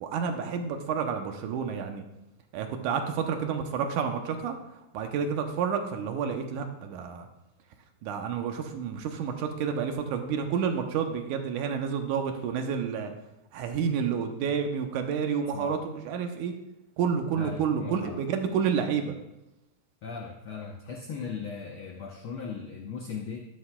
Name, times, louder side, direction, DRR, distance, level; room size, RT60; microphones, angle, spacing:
voice 1, 0.0-2.1 2.5-4.5 4.9-7.3 8.0-13.1 13.5-16.5 17.0-19.1, right 7 dB, 80° right, 5 dB, 2.2 m, -29 dB
voice 2, 17.4-18.2 20.0-23.4, left 5 dB, 85° left, 0 dB, 1.1 m, -38 dB
12.5 x 11.5 x 2.3 m, 0.91 s
omnidirectional pair, 3.5 m